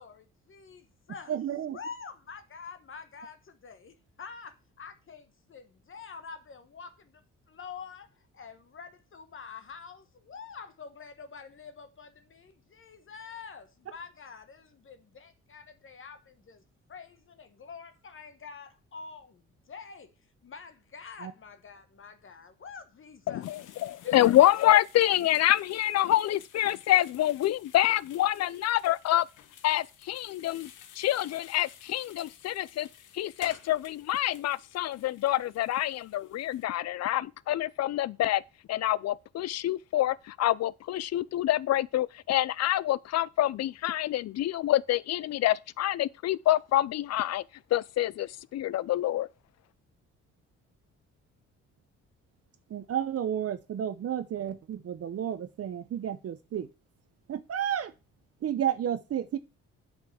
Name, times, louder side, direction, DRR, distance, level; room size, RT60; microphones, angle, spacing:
voice 1, 0.0-1.3 1.7-7.2 7.5-16.6 16.9-20.1 20.4-23.5 24.0-24.3, left 5 dB, 45° left, 1.1 m, -46 dB
voice 2, 1.3-1.8 21.2-21.3 52.7-56.7 57.3-57.9 58.4-59.4, right 10 dB, 50° right, 0.8 m, -32 dB
voice 3, 23.3-29.3 29.6-30.7 31.0-32.9 33.1-38.4 38.7-47.4 47.7-49.3, left 14 dB, 60° left, 0.5 m, -26 dB
sound 1, 23.4-36.6, left 9 dB, 85° left, 1.2 m, -53 dB
8.3 x 5.2 x 6.3 m
cardioid pair, 90°, 30 cm